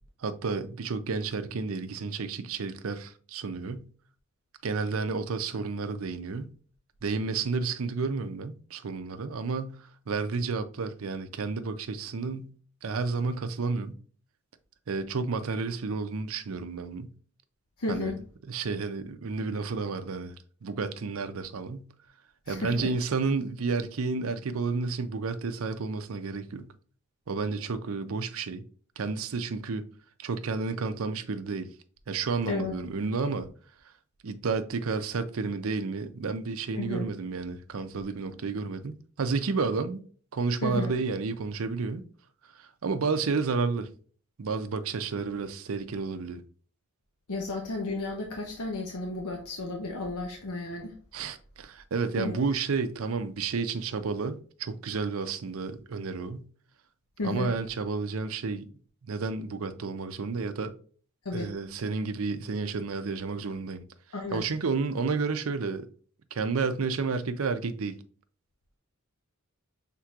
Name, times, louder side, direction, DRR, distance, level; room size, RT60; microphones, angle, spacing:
voice 1, 0.2-3.9 4.6-6.5 7.0-12.5 12.8-14.0 14.9-17.1 17.9-18.1 18.5-20.3 20.6-21.9 22.5-26.7 27.3-28.6 29.0-29.9 30.2-31.7 32.1-33.5 34.2-40.0 40.3-42.0 42.6-43.9 44.4-46.4 51.1-56.5 57.2-58.7 59.0-60.7 61.3-63.8 64.3-65.9 66.3-68.0, right 4 dB, 70° right, 0.5 m, -31 dB
voice 2, 17.8-18.2 22.5-22.9 32.5-32.8 36.8-37.1 40.6-40.9 47.3-50.9 52.1-52.6 57.2-57.5 61.2-61.5 64.1-64.5, left 2 dB, 80° left, 0.8 m, -33 dB
5.9 x 3.7 x 2.4 m
head